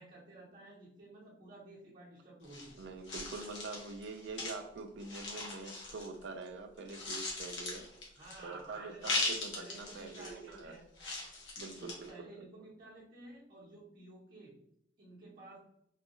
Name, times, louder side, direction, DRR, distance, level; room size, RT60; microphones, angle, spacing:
voice 1, 0.0-2.7 8.2-9.1 9.5-10.9 11.7-14.5 15.0-15.6, right 2 dB, 45° right, -8 dB, 0.8 m, -53 dB
sound 1, 2.4-6.5 6.8-8.6 9.0-10.6 11.0-12.1, left 2 dB, 75° left, 0.9 m, -39 dB
voice 2, 2.8-7.9 8.4-10.8 11.6-12.1 12.4-12.5, right 3 dB, 70° right, 7 dB, 0.4 m, -45 dB
3.0 x 2.2 x 2.9 m, 0.77 s
head